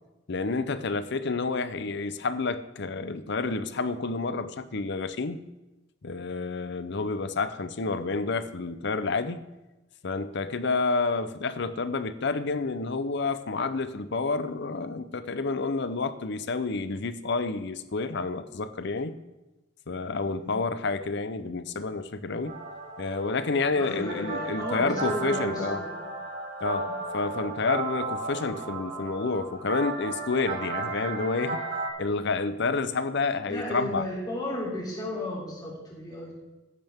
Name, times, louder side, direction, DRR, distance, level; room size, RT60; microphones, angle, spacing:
voice 1, 0.3-5.4 6.0-9.4 10.0-19.1 19.9-22.5 23.0-25.9 26.6-31.7 32.0-34.1, left 3 dB, 65° left, 0.7 m, -29 dB
sound 1, 22.5-31.9, right 3 dB, 60° right, 5.3 m, -34 dB
voice 2, 23.7-26.0 33.5-36.3, left 1 dB, 20° left, 3.2 m, -34 dB
14.5 x 11.0 x 3.6 m
head